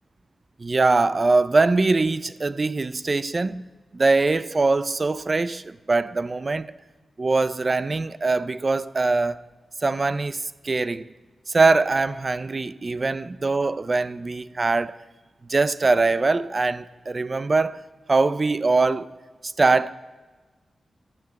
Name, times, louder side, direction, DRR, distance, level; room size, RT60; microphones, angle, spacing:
voice 1, 0.6-3.6 3.9-6.7 7.2-9.4 9.8-11.1 11.5-15.0 15.5-17.8 18.1-19.1 19.4-19.9, right 3 dB, 40° right, 0.4 m, -22 dB
12.0 x 8.1 x 7.9 m
cardioid pair, 75°, 0 cm